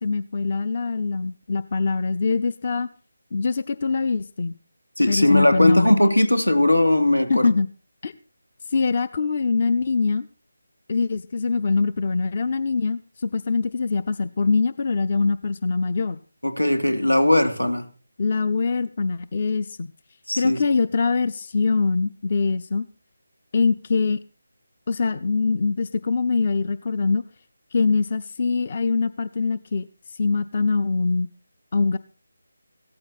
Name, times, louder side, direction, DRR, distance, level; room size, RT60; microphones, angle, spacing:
voice 1, 0.0-2.9 3.3-4.5 5.1-6.0 7.3-7.7 8.0-8.1 8.7-10.3 10.9-16.2 18.2-19.9 20.3-22.8 23.5-24.2 24.9-27.2 27.7-31.3 31.7-32.0, left 4 dB, 40° left, 0.7 m, -23 dB
voice 2, 5.0-7.5 16.4-17.9 20.3-20.6, left 1 dB, 85° left, 2.9 m, -19 dB
16.5 x 14.0 x 4.3 m
figure-of-eight pair, 155°, 0 cm